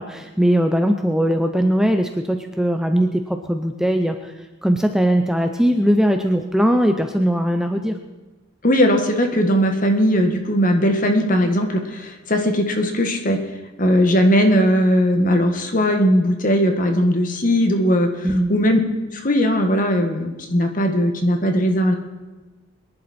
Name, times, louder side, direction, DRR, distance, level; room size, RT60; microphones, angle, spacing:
voice 1, 0.0-4.3 4.6-8.0 18.2-18.5, equal, ahead, 6 dB, 0.6 m, -20 dB
voice 2, 8.6-13.4 13.8-18.8 19.1-22.0, equal, 40° left, 5 dB, 1.5 m, -18 dB
22.5 x 11.0 x 4.3 m, 1.2 s
head